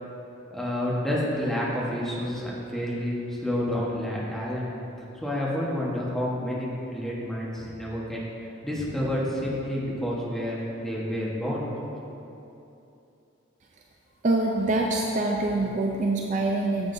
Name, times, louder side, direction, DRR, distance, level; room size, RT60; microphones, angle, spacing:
voice 1, 0.5-4.7 5.2-8.2 8.6-11.9, equal, ahead, -6 dB, 1.1 m, -29 dB
voice 2, 14.2-16.9, right 2 dB, 35° right, 0 dB, 0.4 m, -25 dB
9.2 x 7.4 x 2.6 m, 2.8 s
head